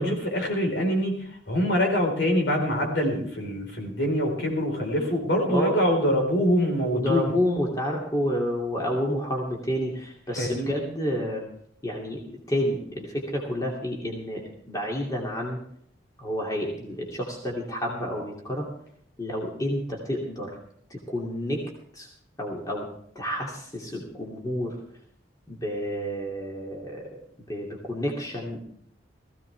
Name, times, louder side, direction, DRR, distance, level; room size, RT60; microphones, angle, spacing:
voice 1, 0.0-7.4 10.4-10.7, equal, 60° left, 1 dB, 4.6 m, -25 dB
voice 2, 5.5-5.8 6.9-11.5 11.8-15.6 16.2-18.7 19.2-20.5 20.9-21.6 21.9-22.1 22.4-22.9 23.1-24.8 25.5-28.6, equal, 20° left, -2 dB, 2.7 m, -30 dB
18.5 x 15.5 x 3.5 m, 0.64 s
head